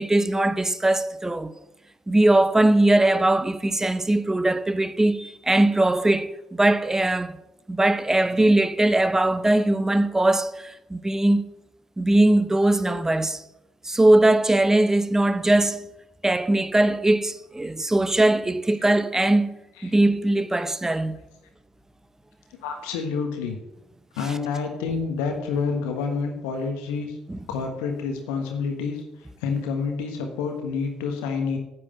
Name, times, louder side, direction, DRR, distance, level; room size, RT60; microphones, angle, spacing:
voice 1, 0.0-1.5 2.1-7.4 7.7-11.4 12.0-13.4 13.8-15.9 16.2-19.5 19.8-21.2 27.3-27.4, right 1 dB, 15° right, 0.9 m, -20 dB
voice 2, 22.6-23.6 24.1-27.2 27.5-29.0 29.4-31.6, left 5 dB, 75° left, 1.4 m, -28 dB
9.9 x 7.9 x 7.7 m
figure-of-eight pair, 45°, 3 cm